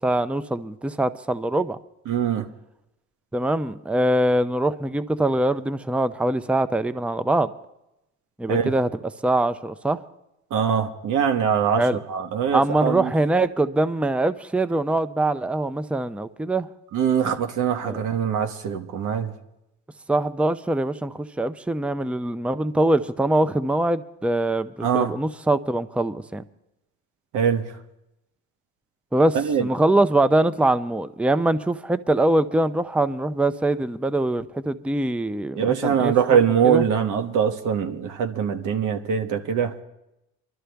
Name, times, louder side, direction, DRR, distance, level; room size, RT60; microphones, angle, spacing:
voice 1, 0.0-1.8 3.3-7.5 8.4-8.9 9.2-10.0 11.8-12.0 12.5-16.7 17.8-18.0 20.1-26.4 29.1-36.1 36.6-36.8, right 1 dB, 5° right, 12 dB, 0.5 m, -23 dB
voice 2, 2.1-2.5 8.5-8.7 10.5-13.1 16.9-19.3 24.8-25.1 27.3-27.6 29.3-29.7 35.5-39.7, right 8 dB, 85° right, 7 dB, 1.2 m, -22 dB
23.0 x 12.5 x 3.4 m, 0.89 s
cardioid pair, 90°, 30 cm